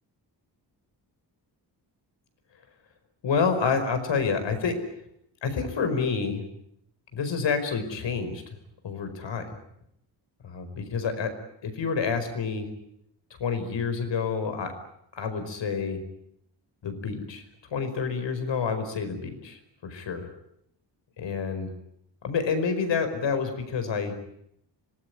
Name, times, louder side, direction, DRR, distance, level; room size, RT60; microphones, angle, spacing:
voice 1, 3.2-4.8 5.4-6.4 7.1-8.4 8.8-9.6 10.4-11.3 11.6-12.7 13.4-14.7 15.1-16.0 16.8-17.4 17.7-20.3 21.2-21.7 22.2-24.2, left 5 dB, 80° left, 8 dB, 5.2 m, -28 dB
26.0 x 19.5 x 9.6 m, 0.74 s
wide cardioid pair, 120°, 43 cm